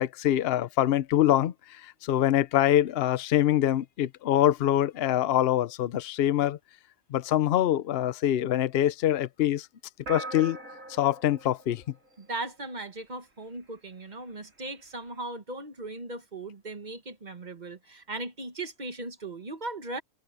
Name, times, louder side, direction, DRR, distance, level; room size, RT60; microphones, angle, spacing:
voice 1, 0.0-6.6 7.1-9.7 10.1-10.6 11.0-11.8, left 12 dB, 55° left, 0.8 m, -24 dB
sound 1, 10.1-12.7, right 2 dB, 80° right, 4.0 m, -41 dB
voice 2, 12.2-20.0, right 2 dB, 35° right, 1.6 m, -38 dB
omnidirectional pair, 1.3 m